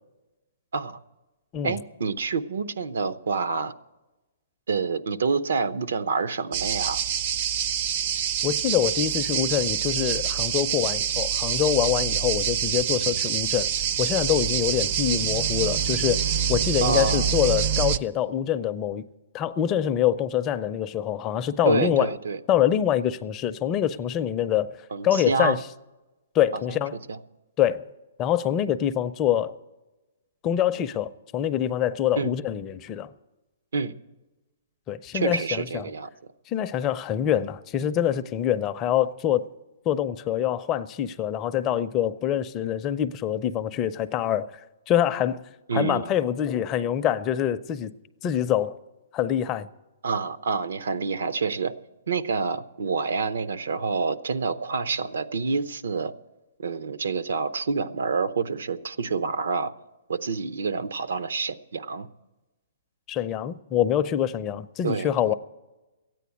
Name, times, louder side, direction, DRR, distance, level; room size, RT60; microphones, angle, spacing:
voice 1, 1.6-3.7 4.7-7.0 16.8-17.3 21.6-22.4 24.9-25.6 26.5-26.6 27.1-27.2 32.2-32.3 33.7-33.9 35.1-36.1 45.7-46.1 50.0-51.7 52.1-56.1 56.6-59.7 60.1-62.1 64.8-65.3, right 4 dB, 80° right, 0.8 m, -27 dB
sound 1, 6.5-18.0, right 8 dB, 40° right, 0.5 m, -26 dB
voice 2, 8.4-13.7 14.0-16.2 16.5-19.0 19.3-22.1 22.5-24.8 25.0-25.6 26.3-27.0 27.6-27.9 28.2-29.5 30.4-33.1 34.9-35.8 36.5-39.4 39.9-44.5 44.9-45.4 45.7-47.9 48.2-48.8 49.1-49.7 63.1-65.3, left 10 dB, 20° left, 0.4 m, -25 dB
14.0 x 9.3 x 8.3 m
hypercardioid pair, 160°, 0 cm